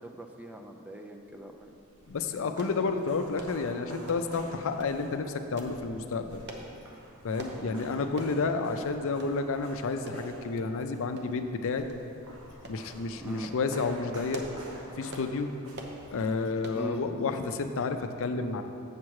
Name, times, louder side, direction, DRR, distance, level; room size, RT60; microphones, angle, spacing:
voice 1, 0.0-1.7 7.5-7.8 13.2-13.5 16.7-17.0, equal, 5° right, 3 dB, 0.4 m, -41 dB
sound 1, 1.5-16.5, right 1 dB, 70° right, 1.2 m, -48 dB
voice 2, 2.1-6.4 7.2-11.9 12.7-14.4 15.0-15.5 16.1-18.6, left 4 dB, 65° left, 8 dB, 0.5 m, -30 dB
sound 2, 2.6-2.8 3.4-3.6 4.1-4.3 4.8-5.0 5.6-5.8 6.5-6.7 7.4-7.6 8.2-8.4 8.7-8.8 9.2-9.3 10.1-10.2 11.2-11.5 11.9-12.0 12.6-12.8 13.3-13.6 14.1-14.6 15.1-15.3 15.7-16.0 16.6-16.8 17.3-17.5 17.8-17.9, right 1 dB, 50° right, 0.8 m, -44 dB
7.3 x 7.3 x 4.7 m, 2.7 s
head